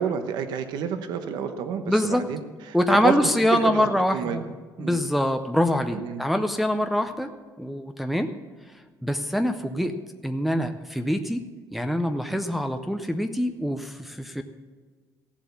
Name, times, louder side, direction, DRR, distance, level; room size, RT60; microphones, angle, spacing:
voice 1, 0.0-2.4 2.7-2.8 3.0-4.5 4.8-5.0 5.9-6.2 12.3-12.4, right 7 dB, 70° right, 8 dB, 1.1 m, -29 dB
voice 2, 1.9-2.2 2.7-4.4 4.8-7.3 7.6-8.3 9.0-9.9 10.2-11.4 11.7-14.4, left 1 dB, ahead, 5 dB, 0.5 m, -24 dB
16.0 x 7.4 x 7.1 m, 1.4 s
cardioid pair, 175°, 8 cm